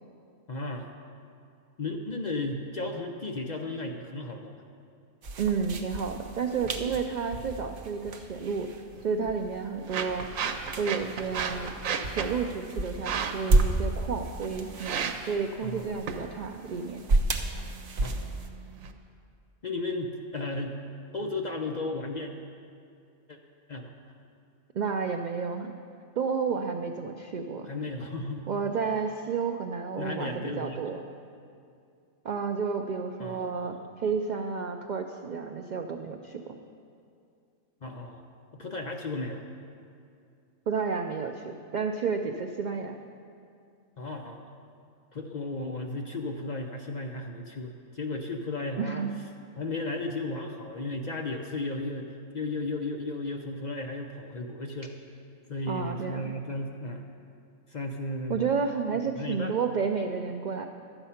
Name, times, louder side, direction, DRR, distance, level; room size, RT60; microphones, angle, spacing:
voice 1, 0.5-0.9 1.8-4.6 15.6-16.0 18.0-18.3 19.6-20.8 21.1-22.3 23.3-23.4 23.7-23.9 27.7-28.5 30.0-30.8 33.2-33.8 37.8-38.2 38.5-39.4 44.0-44.4 45.1-49.0 49.6-54.9 55.5-57.0 57.7-58.5 59.0-59.6, left 2 dB, 50° left, 2 dB, 0.6 m, -34 dB
sound 1, 5.2-18.5, right 2 dB, 50° right, 0.8 m, -32 dB
voice 2, 5.4-8.7 9.0-10.3 10.8-11.7 12.1-17.0 24.7-25.7 26.2-27.7 28.5-31.0 32.2-36.6 40.7-43.0 48.8-49.2 55.7-56.3 58.3-60.7, right 5 dB, 70° right, 5 dB, 0.4 m, -31 dB
sound 2, 8.9-18.9, right 6 dB, 90° right, 1.1 m, -36 dB
12.0 x 7.9 x 5.7 m, 2.4 s
omnidirectional pair, 1.3 m